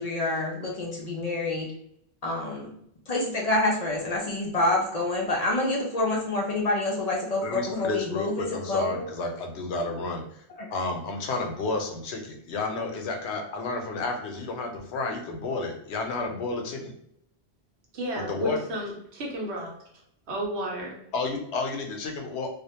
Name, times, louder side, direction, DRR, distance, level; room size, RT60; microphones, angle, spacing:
voice 1, 0.0-1.7 2.2-2.7 3.1-9.1 10.6-10.7, left 2 dB, 55° left, -2 dB, 0.4 m, -27 dB
voice 2, 7.4-10.2 10.7-16.9 18.2-18.6 21.1-22.5, left 3 dB, 90° left, 3 dB, 0.9 m, -31 dB
voice 3, 17.9-19.7 20.3-21.0, equal, 85° right, -1 dB, 1.1 m, -32 dB
2.4 x 2.1 x 2.8 m, 0.73 s
omnidirectional pair, 1.1 m